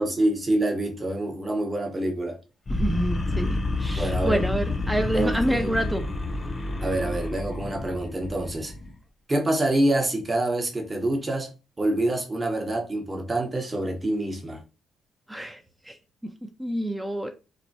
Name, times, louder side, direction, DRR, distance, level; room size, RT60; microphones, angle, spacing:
voice 1, 0.0-2.4 3.9-4.5 5.1-5.8 6.8-8.7 9.3-11.5 11.8-14.6, right 1 dB, 25° right, 0.9 m, -26 dB
sound 1, 2.7-8.9, left 2 dB, 35° left, 0.7 m, -29 dB
voice 2, 2.7-6.0 15.3-15.6 15.9-16.0 16.6-17.3, right 1 dB, 10° right, 0.5 m, -27 dB
3.0 x 2.1 x 2.7 m
supercardioid pair, 60°, 0 cm